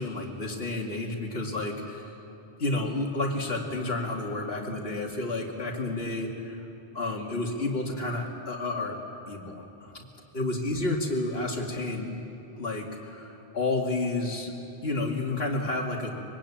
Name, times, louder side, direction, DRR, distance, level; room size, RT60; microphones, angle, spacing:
voice 1, 0.0-2.1 2.6-6.6 6.9-9.0 9.3-10.0 10.3-12.2 12.5-14.5 14.8-16.2, left 2 dB, 65° left, 0 dB, 2.8 m, -30 dB
24.5 x 23.0 x 8.8 m, 3.0 s
omnidirectional pair, 1.1 m